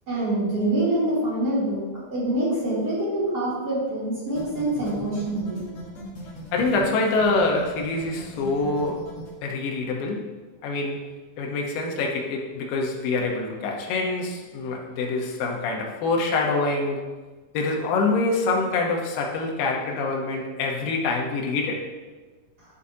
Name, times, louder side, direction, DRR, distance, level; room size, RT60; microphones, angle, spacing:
voice 1, 0.1-5.6, right 1 dB, 30° right, -9 dB, 3.0 m, -25 dB
sound 1, 4.3-9.3, equal, 45° left, 2.2 m, -39 dB
voice 2, 6.5-9.1 9.4-10.3 10.6-11.0 11.4-17.1 17.5-21.8, left 3 dB, 75° left, 0 dB, 2.6 m, -25 dB
11.0 x 7.0 x 2.8 m, 1.3 s
omnidirectional pair, 4.2 m